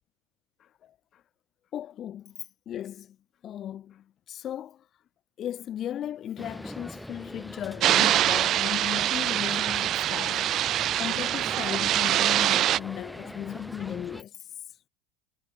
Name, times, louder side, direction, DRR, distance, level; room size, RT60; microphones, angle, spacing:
voice 1, 0.6-1.2 1.7-2.3 2.6-3.2 3.4-4.8 5.4-14.3, left 11 dB, 40° left, 3.4 m, -36 dB
sound 1, 6.4-14.2, equal, ahead, 7.7 m, -43 dB
sound 2, 7.8-12.8, right 12 dB, 45° right, 0.4 m, -24 dB
hypercardioid pair, 95°, 0 cm